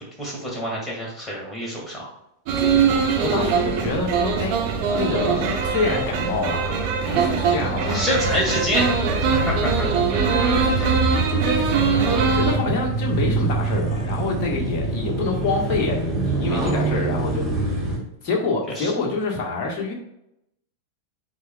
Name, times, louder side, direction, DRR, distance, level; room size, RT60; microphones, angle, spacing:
voice 1, 0.2-2.1 7.1-7.3 7.9-9.9 16.5-16.8 18.8-18.9, equal, 10° left, -3 dB, 2.4 m, -27 dB
sound 1, 2.5-12.6, right 5 dB, 45° right, 1.1 m, -22 dB
voice 2, 3.2-6.8 7.1-8.0 9.8-12.0 12.3-17.9 18.2-19.9, left 3 dB, 35° left, -1 dB, 1.6 m, -27 dB
sound 2, 8.1-18.0, right 2 dB, 5° right, 2.2 m, -26 dB
8.2 x 4.8 x 2.5 m, 0.83 s
figure-of-eight pair, 90°, 0 cm